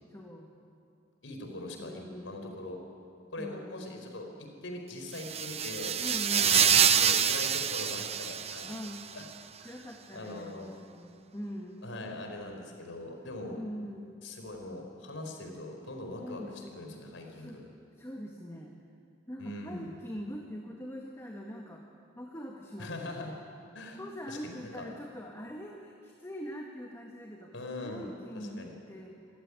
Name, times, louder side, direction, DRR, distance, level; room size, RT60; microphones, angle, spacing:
voice 1, 0.1-0.5 1.8-2.8 3.4-3.8 6.0-6.9 8.7-9.0 9.6-11.8 13.5-14.2 16.2-16.7 17.3-17.6 18.0-18.8 19.3-21.8 22.2-23.4 23.9-29.2, equal, 15° left, 0 dB, 1.8 m, -43 dB
voice 2, 1.2-2.8 3.3-5.9 6.3-8.7 9.1-9.2 9.6-9.7 10.1-10.7 11.8-13.6 14.2-17.7 19.4-19.9 22.8-23.3 23.7-24.0 24.3-24.9 27.5-28.1 28.6-28.7, left 2 dB, 80° left, 3 dB, 4.5 m, -41 dB
sound 1, 5.1-9.0, right 8 dB, 35° right, 0.8 m, -26 dB
26.5 x 15.5 x 9.9 m, 2.5 s
head